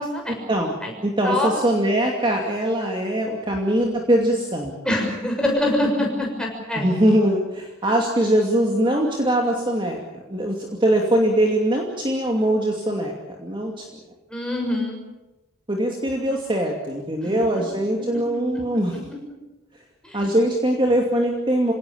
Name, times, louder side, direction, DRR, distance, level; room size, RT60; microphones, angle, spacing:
voice 1, 0.0-0.4 0.8-0.9 1.2-1.5 4.8-6.9 7.8-7.9 14.3-15.0 17.2-17.6 18.0-18.2 20.0-20.3, left 1 dB, 5° left, 0 dB, 6.5 m, -25 dB
voice 2, 1.0-4.8 6.8-13.8 15.7-18.9 20.1-21.7, right 1 dB, 25° right, 1 dB, 2.5 m, -22 dB
27.0 x 18.0 x 8.6 m, 1.0 s
head